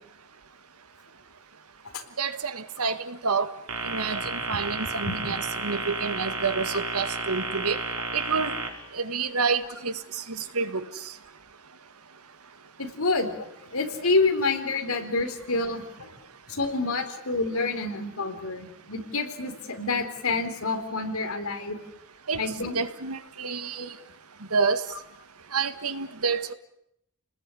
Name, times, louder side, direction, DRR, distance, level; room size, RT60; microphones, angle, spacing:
voice 1, 2.2-3.5 3.8-7.8 8.1-8.6 8.9-11.1 22.3-23.9 24.5-24.8 25.5-26.5, right 5 dB, 90° right, 11 dB, 1.8 m, -28 dB
sound 1, 3.7-8.7, right 3 dB, 70° right, 5.7 m, -32 dB
voice 2, 12.8-16.1 16.5-21.8 22.4-22.8 23.8-23.9, left 3 dB, 75° left, 6 dB, 4.1 m, -28 dB
30.0 x 20.0 x 9.9 m, 0.77 s
head